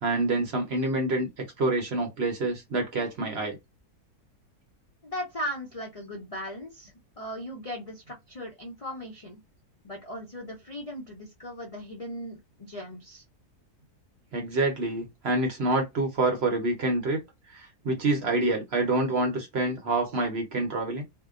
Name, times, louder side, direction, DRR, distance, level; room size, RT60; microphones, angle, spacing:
voice 1, 0.0-3.6 14.3-17.2 17.5-21.0, right 2 dB, 55° right, 0.8 m, -27 dB
voice 2, 5.0-9.4 9.8-13.2, equal, 65° left, 0.3 m, -38 dB
2.7 x 2.2 x 2.3 m
omnidirectional pair, 1.7 m